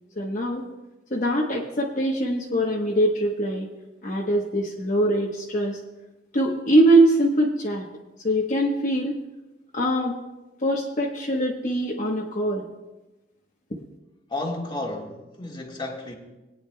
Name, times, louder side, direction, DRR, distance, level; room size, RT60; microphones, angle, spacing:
voice 1, 0.2-0.7 1.1-3.7 4.0-5.8 6.3-7.9 8.2-9.2 9.7-10.2 10.6-12.7 13.7-13.8, right 1 dB, 45° left, 1.1 m, -22 dB
voice 2, 14.3-16.1, left 2 dB, 25° left, 1.7 m, -32 dB
21.5 x 9.5 x 2.3 m
head